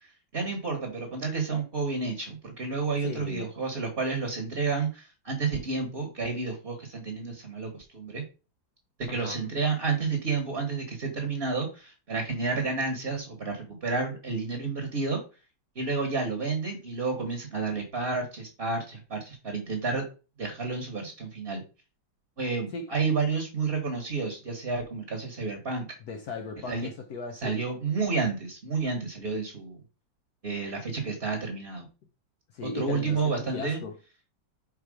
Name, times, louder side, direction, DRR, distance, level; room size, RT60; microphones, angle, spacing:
voice 1, 0.3-8.2 9.1-15.2 15.7-20.0 20.4-21.6 22.4-25.9 26.7-26.9 27.4-29.8 30.4-31.9 32.6-33.8, right 4 dB, 35° right, 1.3 m, -30 dB
voice 2, 3.0-3.5 9.1-9.4 22.7-23.0 26.0-27.6 32.5-34.0, left 4 dB, 65° left, 1.1 m, -37 dB
4.8 x 4.5 x 4.8 m
omnidirectional pair, 2.1 m